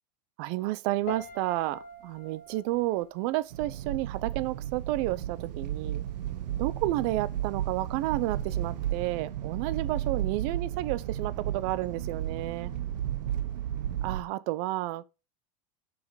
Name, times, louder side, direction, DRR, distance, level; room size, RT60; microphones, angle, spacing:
voice 1, 0.4-6.0 6.6-12.7 14.0-15.1, right 17 dB, 60° right, 0.7 m, -31 dB
Piano, 1.1-4.2 4.4-4.9, left 2 dB, 40° left, 3.6 m, -45 dB
sound 1, 3.5-14.2, right 11 dB, 90° right, 0.9 m, -33 dB
sound 2, 5.0-13.1, right 7 dB, 40° right, 2.6 m, -46 dB
6.6 x 5.7 x 4.8 m
supercardioid pair, 125°, 21 cm